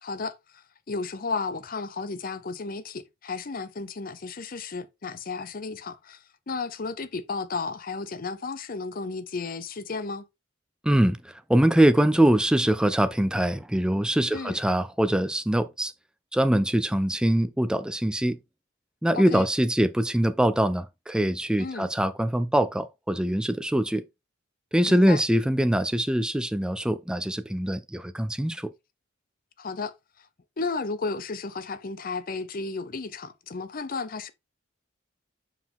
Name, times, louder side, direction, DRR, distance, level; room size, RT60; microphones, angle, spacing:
voice 1, 0.0-6.2 6.5-10.3 14.3-14.6 19.1-19.5 21.6-21.9 24.9-25.2 29.6-29.9 30.6-34.3, left 4 dB, 45° left, 0.6 m, -33 dB
voice 2, 10.8-15.9 16.3-18.4 19.0-24.0 24.7-28.7, right 1 dB, 5° right, 0.3 m, -23 dB
5.7 x 4.8 x 3.5 m
head